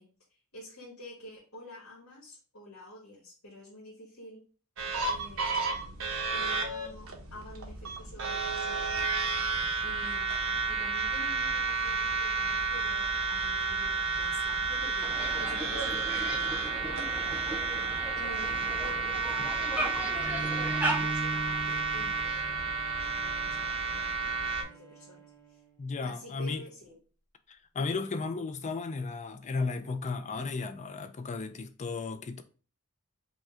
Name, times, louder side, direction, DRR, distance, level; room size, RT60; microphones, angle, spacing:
voice 1, 0.0-4.4 5.1-6.0 6.3-9.0 9.3-9.6 9.8-17.2 17.6-17.8 18.1-20.3 20.9-22.8 23.1-25.2 25.5-25.6 26.0-27.0, left 1 dB, 85° left, 1.6 m, -49 dB
sound 1, 4.8-24.6, right 4 dB, 70° right, 0.9 m, -31 dB
sound 2, 15.0-21.1, right 1 dB, 5° right, 0.7 m, -36 dB
Bowed string instrument, 20.1-25.8, right 2 dB, 15° left, 1.0 m, -41 dB
voice 2, 25.8-26.6 27.5-32.4, left 4 dB, 35° left, 0.4 m, -34 dB
5.2 x 2.2 x 3.6 m
head